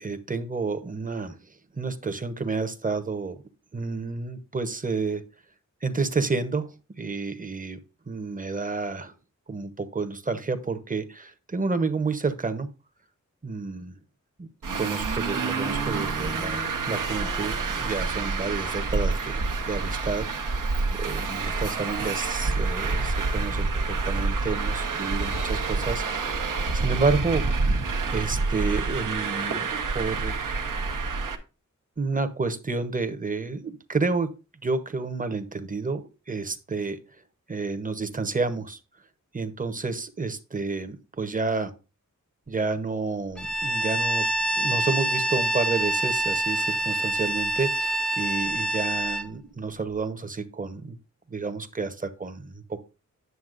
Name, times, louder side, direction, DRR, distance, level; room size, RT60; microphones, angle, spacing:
voice 1, 0.0-1.4 1.7-3.3 3.7-5.2 5.8-6.7 7.0-7.8 8.1-9.1 9.5-12.7 13.4-14.0 14.4-20.6 21.0-27.8 28.1-30.4 32.0-34.3 34.6-36.0 36.3-37.0 37.5-38.8 39.3-41.7 42.5-44.3 44.5-51.0 51.3-52.8, right 4 dB, 25° right, 11 dB, 0.8 m, -30 dB
Traffic noise roadway noise, 14.6-31.4, right 3 dB, 90° right, 0.9 m, -28 dB
Bowed string instrument, 43.4-49.3, right 1 dB, 5° left, 0.4 m, -26 dB
9.4 x 6.9 x 2.5 m, 0.31 s
wide cardioid pair, 95°, 31 cm